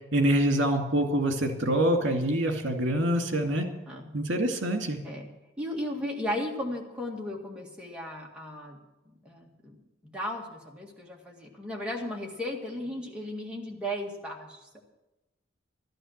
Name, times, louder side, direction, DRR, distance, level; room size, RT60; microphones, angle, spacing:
voice 1, 0.1-3.7 4.1-5.0, right 1 dB, 65° right, 3 dB, 2.2 m, -25 dB
voice 2, 5.6-8.8 9.2-9.8 10.0-14.8, left 1 dB, 5° right, -2 dB, 2.0 m, -35 dB
12.5 x 12.0 x 6.6 m, 0.99 s
head